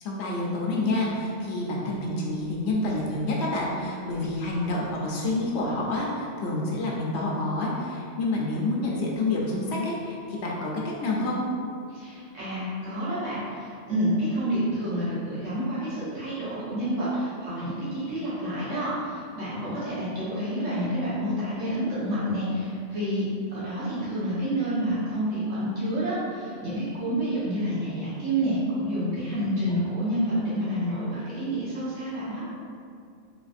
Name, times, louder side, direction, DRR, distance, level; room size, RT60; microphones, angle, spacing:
voice 1, 0.0-11.4, left 2 dB, 70° left, -3 dB, 0.8 m, -28 dB
voice 2, 11.9-32.4, equal, 90° right, -11 dB, 1.4 m, -29 dB
3.2 x 2.5 x 2.4 m, 2.4 s
omnidirectional pair, 1.2 m